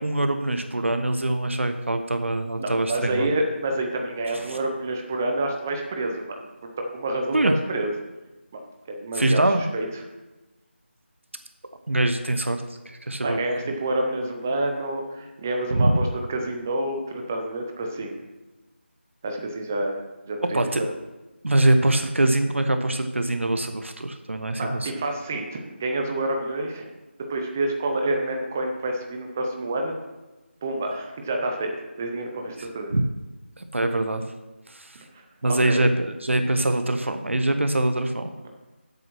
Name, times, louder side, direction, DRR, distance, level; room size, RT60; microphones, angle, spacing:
voice 1, 0.0-3.3 4.5-4.6 7.3-7.5 9.2-9.6 11.9-13.4 15.7-16.0 20.5-20.8 21.4-24.9 32.9-33.0 33.6-34.2 34.7-35.0 35.4-38.3, right 1 dB, 80° right, 7 dB, 0.9 m, -23 dB
voice 2, 2.6-7.9 8.5-8.6 8.9-10.0 13.2-18.2 19.2-20.0 20.3-20.9 24.6-26.9 27.3-30.0 30.6-32.9 35.1-35.8 38.4-38.5, right 2 dB, 10° right, 3 dB, 0.5 m, -28 dB
12.0 x 8.0 x 3.1 m, 1.1 s
figure-of-eight pair, 170°, 7 cm